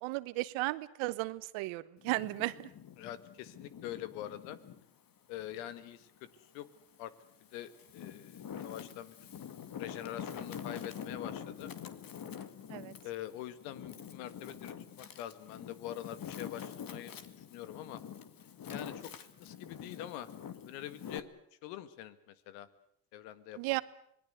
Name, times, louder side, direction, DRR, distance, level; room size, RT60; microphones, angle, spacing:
voice 1, 0.0-2.7 12.7-12.9 23.6-23.8, right 21 dB, 80° right, 16 dB, 1.2 m, -35 dB
Wind, 2.0-4.8 5.3-6.6 7.2-21.2, left 8 dB, 45° left, 2.2 m, -46 dB
voice 2, 3.0-4.6 5.3-6.3 6.5-6.7 7.0-7.1 7.5-9.2 9.8-11.7 13.0-17.1 17.5-18.0 18.7-19.1 19.4-20.3 20.7-21.3 21.6-22.7 23.1-23.8, left 12 dB, 90° left, 14 dB, 1.9 m, -44 dB
26.0 x 20.0 x 7.9 m, 0.70 s
supercardioid pair, 95°, 47 cm